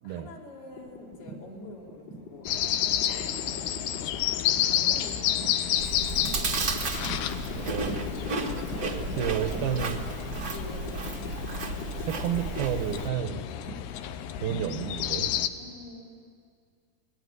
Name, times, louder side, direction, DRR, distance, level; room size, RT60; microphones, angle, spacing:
voice 1, 0.0-5.8 8.5-11.1 13.3-13.5 15.5-16.2, left 1 dB, 70° left, -3 dB, 6.3 m, -45 dB
sound 1, 0.7-15.3, left 1 dB, 45° left, 3.1 m, -44 dB
sound 2, 2.5-15.5, left 11 dB, 85° left, 3.0 m, -31 dB
Chewing mastication, 5.8-13.1, right 3 dB, 45° right, 1.2 m, -33 dB
voice 2, 7.6-8.1 9.2-10.1 12.0-13.4 14.4-15.3, right 9 dB, 70° right, 8 dB, 2.7 m, -31 dB
27.5 x 20.5 x 9.5 m, 2.2 s
omnidirectional pair, 4.7 m